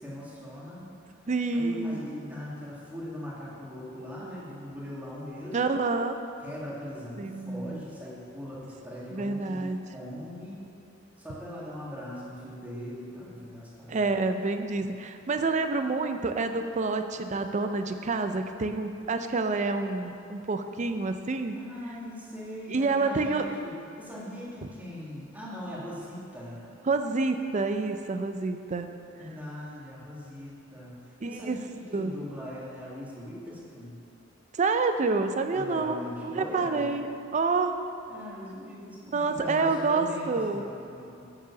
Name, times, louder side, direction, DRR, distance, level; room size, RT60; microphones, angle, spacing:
voice 1, 0.0-5.7 6.4-10.6 11.2-14.0 21.6-26.7 29.1-34.0 35.5-37.0 38.1-41.3, equal, 10° right, -7 dB, 1.8 m, -40 dB
voice 2, 1.3-2.0 5.5-6.2 7.2-7.8 9.1-9.8 13.9-21.6 22.7-23.4 26.9-28.9 31.2-31.6 31.9-32.1 34.5-37.7 39.1-40.6, right 3 dB, 35° right, 7 dB, 0.4 m, -28 dB
7.4 x 4.8 x 7.0 m, 2.5 s
head